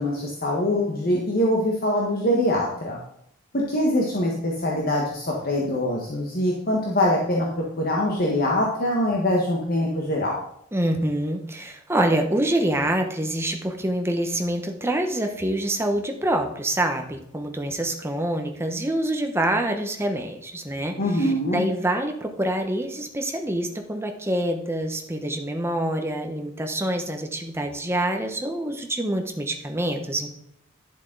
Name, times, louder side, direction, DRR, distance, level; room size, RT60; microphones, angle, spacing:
voice 1, 0.0-3.0 3.5-7.5 7.8-10.4 21.0-21.7, left 1 dB, 45° left, -2 dB, 1.3 m, -23 dB
voice 2, 10.7-30.3, right 1 dB, 10° right, 4 dB, 1.0 m, -26 dB
10.5 x 7.3 x 3.9 m, 0.71 s
head